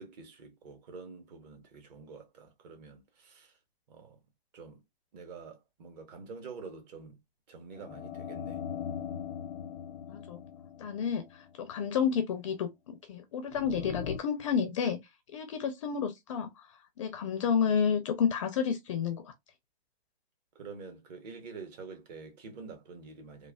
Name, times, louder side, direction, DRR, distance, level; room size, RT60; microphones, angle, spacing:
voice 1, 0.0-3.5 3.9-4.2 4.5-4.8 5.1-7.2 7.5-8.6 20.5-23.5, right 4 dB, 40° right, 1.0 m, -47 dB
sound 1, 7.7-11.7 13.5-14.2, left 7 dB, 80° left, 0.5 m, -40 dB
voice 2, 10.1-10.4 10.8-11.2 11.6-15.0 15.3-16.5 17.0-19.3, left 7 dB, 30° left, 0.4 m, -30 dB
3.2 x 2.2 x 2.2 m
hypercardioid pair, 135°, 31 cm